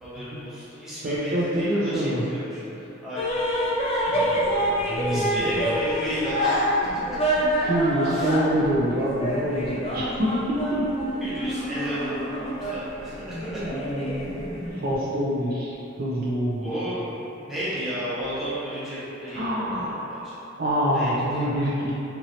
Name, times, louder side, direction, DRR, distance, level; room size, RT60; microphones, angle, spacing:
voice 1, 0.0-3.4 4.9-6.8 7.1-7.2 8.1-8.4 11.2-13.6 16.6-20.4 20.9-21.4, equal, ahead, -13 dB, 0.8 m, -33 dB
voice 2, 1.0-2.3 4.1-5.8 7.6-10.9 12.5-12.7 13.5-14.4 14.7-16.7 19.3-20.3 20.6-21.9, equal, 50° right, -7 dB, 0.4 m, -26 dB
sound 1, 3.2-14.9, equal, 30° left, 0.3 m, -27 dB
2.9 x 2.6 x 2.7 m, 3.0 s
head